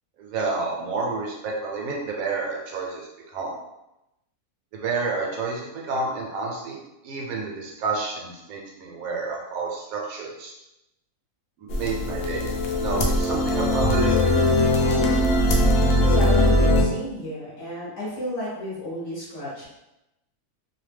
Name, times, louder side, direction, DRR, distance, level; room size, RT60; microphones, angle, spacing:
voice 1, 0.2-3.5 4.7-10.5 11.6-14.1 14.5-14.6 14.9-15.0, right 3 dB, 75° right, -2 dB, 1.0 m, -30 dB
sound 1, 11.7-16.8, left 1 dB, 85° left, 0.5 m, -20 dB
voice 2, 16.1-19.7, left 1 dB, 60° left, -7 dB, 1.1 m, -32 dB
2.8 x 2.0 x 3.3 m, 0.92 s
omnidirectional pair, 1.6 m